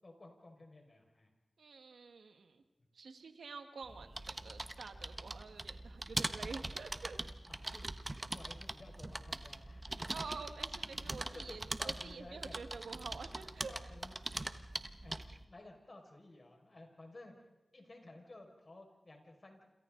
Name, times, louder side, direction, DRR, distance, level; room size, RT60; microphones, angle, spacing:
voice 1, 0.0-1.3 7.5-7.9 8.3-10.1 11.0-12.6 13.0-13.2 13.7-14.6 15.0-17.3 17.7-19.6, left 2 dB, 50° left, 2 dB, 5.4 m, -55 dB
voice 2, 1.6-2.6 2.9-7.2 10.1-13.7, right 4 dB, 90° right, 7 dB, 1.6 m, -48 dB
sound 1, 3.8-15.4, right 2 dB, 35° right, 1.3 m, -42 dB
28.5 x 27.5 x 3.9 m, 1.0 s
cardioid pair, 40°, 0 cm